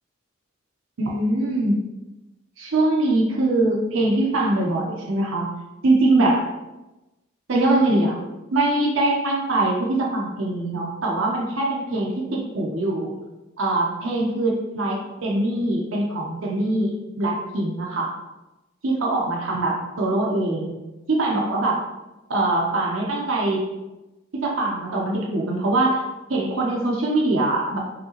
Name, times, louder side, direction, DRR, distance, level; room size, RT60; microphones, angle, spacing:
voice 1, 1.0-1.7 2.6-5.5 5.8-6.5 7.5-8.2 8.5-13.1 13.6-15.0 15.2-18.1 18.8-20.7 21.1-21.8 22.3-23.7 24.4-26.0 26.3-27.8, right 2 dB, 90° right, -2 dB, 0.8 m, -22 dB
5.1 x 2.8 x 2.9 m, 1.0 s
head